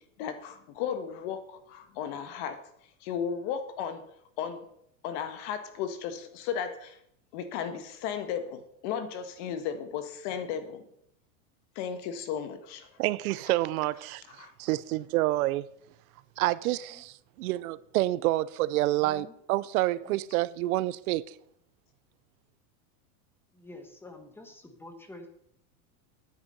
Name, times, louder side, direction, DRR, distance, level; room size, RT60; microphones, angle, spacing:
voice 1, 0.2-2.6 3.0-4.0 4.4-4.6 5.0-7.0 7.3-10.8 11.7-12.9 14.4-14.5, left 8 dB, 50° left, 1.4 m, -35 dB
voice 2, 13.0-15.7 16.4-21.3, right 17 dB, 80° right, 0.7 m, -28 dB
voice 3, 16.6-17.0 19.0-19.4 20.0-20.2 23.5-25.3, left 2 dB, 5° left, 1.2 m, -48 dB
10.5 x 9.5 x 5.5 m
supercardioid pair, 165°, 43 cm